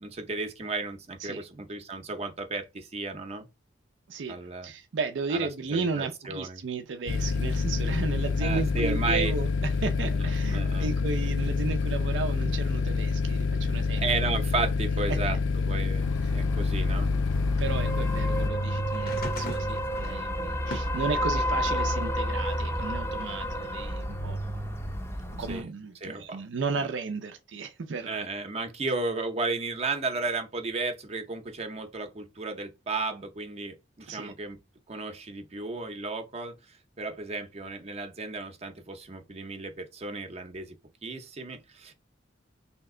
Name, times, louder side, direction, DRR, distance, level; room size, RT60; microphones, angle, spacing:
voice 1, 0.0-3.4 4.3-4.7 5.3-6.6 8.4-9.3 10.1-10.9 14.0-15.4 15.6-16.1 16.3-17.1 25.5-25.7 26.0-26.4 26.8-26.9 28.1-34.6 34.9-36.5 37.0-40.7 41.0-41.9, right 3 dB, 35° right, 0.6 m, -33 dB
voice 2, 4.1-14.1 15.1-15.4 16.2-16.3 17.6-24.4 25.4-28.3 34.1-34.3, right 4 dB, 80° right, 0.5 m, -34 dB
sound 1, 7.1-18.5, left 4 dB, 80° left, 0.3 m, -27 dB
sound 2, 16.0-25.6, equal, 15° left, 0.5 m, -31 dB
sound 3, 18.9-21.9 22.4-23.6 24.6-24.7, left 2 dB, 50° left, 0.7 m, -41 dB
3.2 x 2.8 x 3.6 m
head